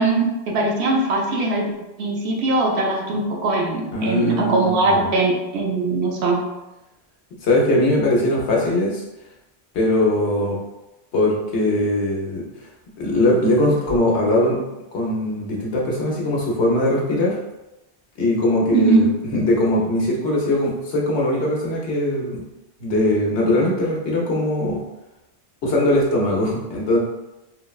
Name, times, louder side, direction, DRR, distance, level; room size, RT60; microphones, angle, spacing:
voice 1, 0.0-6.4 18.7-19.0, right 2 dB, 85° right, -1 dB, 0.9 m, -21 dB
voice 2, 3.9-5.1 7.4-9.0 9.7-10.6 11.1-12.4 13.0-14.6 14.9-17.4 18.2-22.4 22.8-24.8 25.6-27.0, left 1 dB, 85° left, -3 dB, 1.1 m, -20 dB
3.9 x 2.1 x 2.3 m, 0.97 s
omnidirectional pair, 1.1 m